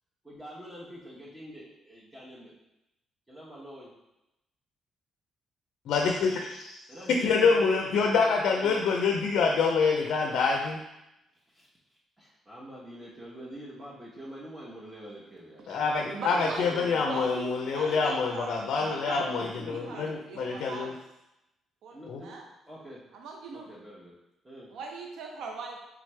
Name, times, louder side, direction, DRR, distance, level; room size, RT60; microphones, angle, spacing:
voice 1, 0.2-2.5 3.3-3.9 6.9-8.3 8.5-9.3 11.5-11.7 12.2-17.3 18.9-20.4 21.9-22.3 22.7-23.0 23.5-24.1 24.4-24.7, equal, 20° right, -7 dB, 0.8 m, -45 dB
voice 2, 5.9-6.8 7.2-10.8 15.7-20.9 22.1-22.2, left 4 dB, 75° left, 2 dB, 0.4 m, -26 dB
voice 3, 16.1-19.3 19.6-21.0 21.8-22.0 22.2-22.5 23.1-23.7 24.7-25.8, right 4 dB, 80° right, 2 dB, 0.4 m, -40 dB
3.5 x 3.2 x 3.1 m, 0.90 s
cardioid pair, 90°, 0 cm